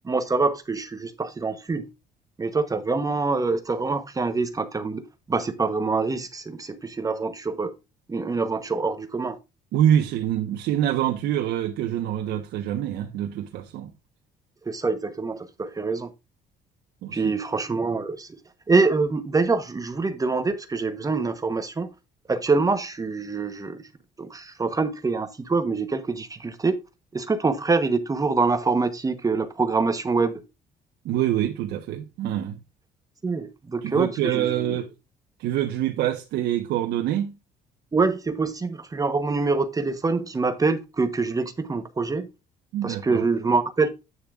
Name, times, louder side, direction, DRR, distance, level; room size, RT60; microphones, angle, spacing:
voice 1, 0.0-1.9 2.4-7.7 8.1-9.4 14.7-16.1 17.1-18.3 18.7-21.9 22.3-23.8 24.2-26.8 27.1-30.4 33.2-34.7 37.9-42.3 42.8-43.9, right 4 dB, 20° right, 1.0 m, -25 dB
voice 2, 9.7-13.9 17.0-17.3 31.0-32.6 33.8-34.9 35.4-37.3 42.7-43.2, right 11 dB, 80° right, 1.1 m, -25 dB
9.0 x 6.9 x 2.4 m
cardioid pair, 110°, 17 cm